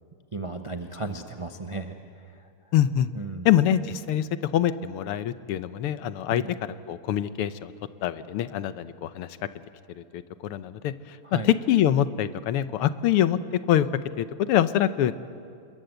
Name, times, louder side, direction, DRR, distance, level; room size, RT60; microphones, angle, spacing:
voice 1, 0.3-1.9 3.2-3.5 6.3-6.5 11.3-11.5, right 3 dB, 50° right, 6 dB, 0.3 m, -34 dB
voice 2, 2.7-3.1 3.5-6.4 6.9-7.7 8.0-9.4 10.0-13.9 14.2-15.1, left 11 dB, 85° left, 14 dB, 1.7 m, -24 dB
27.5 x 21.5 x 7.9 m, 2.5 s
omnidirectional pair, 2.4 m